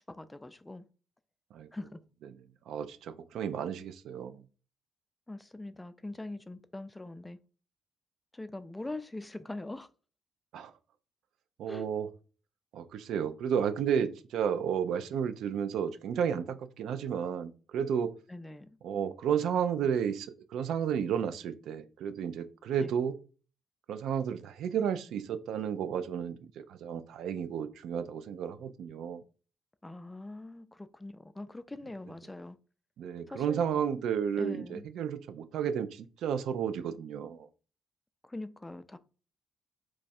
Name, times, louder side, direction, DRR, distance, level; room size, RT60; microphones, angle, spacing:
voice 1, 0.1-0.9 1.7-2.0 5.3-7.4 8.3-9.9 11.7-11.9 18.3-18.8 22.8-22.9 29.8-32.6 33.3-33.6 34.4-34.8 38.2-39.0, left 2 dB, 10° left, 0.3 m, -42 dB
voice 2, 2.3-4.5 10.5-10.7 11.6-12.1 12.7-18.1 18.8-23.2 23.9-29.2 33.0-37.5, right 8 dB, 80° right, 0.3 m, -32 dB
3.1 x 2.3 x 4.1 m
cardioid pair, 90°, 0 cm